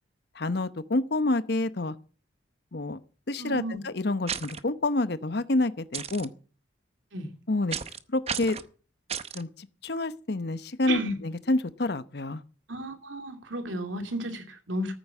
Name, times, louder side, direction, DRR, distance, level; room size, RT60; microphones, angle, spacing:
voice 1, 0.3-2.0 2.7-3.0 3.3-6.3 7.5-7.8 8.1-8.6 9.3-12.4, left 2 dB, 55° left, 0.9 m, -28 dB
voice 2, 3.4-3.8 7.1-7.3 10.9-11.2 12.7-14.9, right 1 dB, 80° right, 2.7 m, -33 dB
sound 1, 4.3-4.6 5.9-6.3 7.7-8.0 8.3-8.7 9.1-9.4, right 7 dB, 35° right, 0.7 m, -33 dB
14.0 x 8.6 x 7.2 m
head